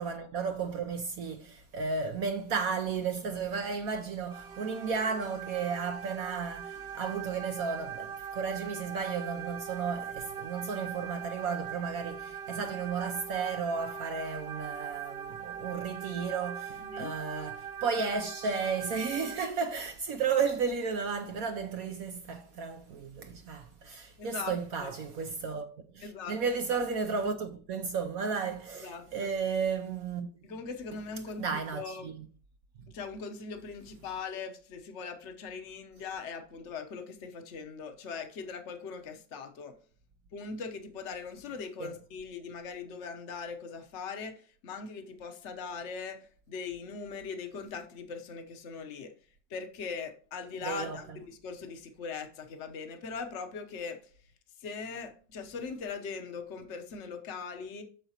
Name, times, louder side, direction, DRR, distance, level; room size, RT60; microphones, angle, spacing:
voice 1, 0.0-25.7 25.9-30.3 31.4-32.3 41.8-42.0 50.6-51.2, right 5 dB, 65° right, 1.0 m, -33 dB
sound 1, 4.3-19.4, right 8 dB, 40° right, 1.2 m, -41 dB
voice 2, 16.8-17.1 24.2-24.5 24.8-24.9 26.0-26.4 28.8-29.0 30.4-32.1 32.9-39.7 40.3-44.3 44.6-49.1 49.5-54.0 54.6-57.8, left 5 dB, 50° left, 1.1 m, -40 dB
8.9 x 6.7 x 2.9 m
omnidirectional pair, 1.8 m